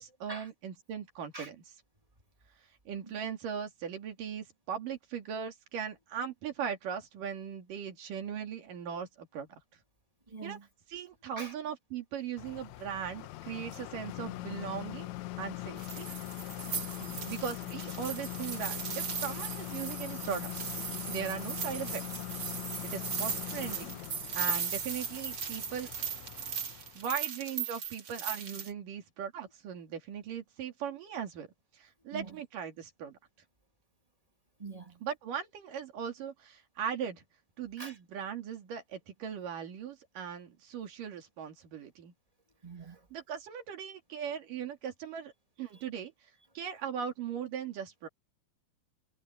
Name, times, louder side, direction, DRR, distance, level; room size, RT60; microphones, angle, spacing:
voice 1, 0.0-1.6 2.9-9.6 10.4-10.6 10.9-16.1 17.0-20.6 21.1-22.1 22.8-24.0 24.3-25.9 27.0-31.5 31.7-33.2 35.0-37.2 37.6-42.1 43.1-45.3 45.6-46.1 46.6-48.1, right 8 dB, 80° right, 4.1 m, -39 dB
voice 2, 10.3-10.6 11.4-11.5 32.1-32.4 34.6-35.0 37.8-38.0 42.6-43.0, right 3 dB, 15° right, 1.2 m, -44 dB
sound 1, 12.4-27.1, left 17 dB, 75° left, 1.8 m, -42 dB
sound 2, 15.8-28.7, right 6 dB, 40° right, 2.6 m, -38 dB
omnidirectional pair, 3.7 m